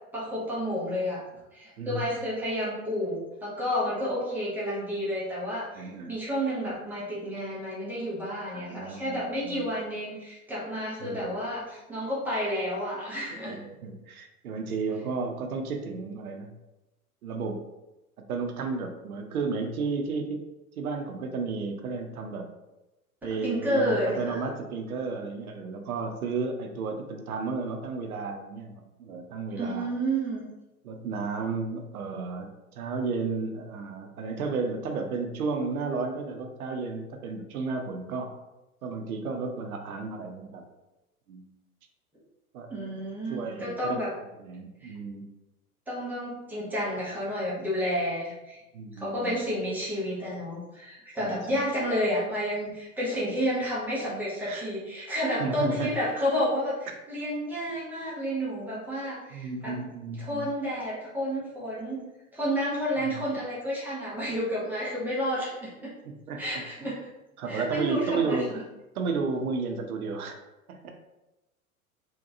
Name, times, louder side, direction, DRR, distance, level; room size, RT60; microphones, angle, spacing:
voice 1, 0.1-1.2 1.5-13.6 23.4-24.4 29.5-30.5 42.7-44.1 44.8-44.9 45.9-48.6 49.0-59.8 60.2-62.0 62.3-65.9 66.4-67.0 67.5-68.6, equal, 5° right, -8 dB, 0.4 m, -30 dB
voice 2, 1.8-2.1 5.8-6.1 8.5-9.7 11.0-11.4 13.5-16.5 17.2-17.6 18.2-20.4 20.8-22.5 23.2-29.9 30.8-38.4 38.8-40.6 41.3-41.5 42.5-42.7 43.3-44.0 44.4-45.3 48.7-49.4 51.2-51.6 54.4-54.7 55.4-55.9 59.3-60.5 63.0-63.2 66.0-67.0 67.4-68.6 69.0-70.4 70.7-70.9, right 4 dB, 70° right, 5 dB, 0.6 m, -33 dB
2.7 x 2.2 x 2.5 m, 1.0 s
figure-of-eight pair, 85°, 45 cm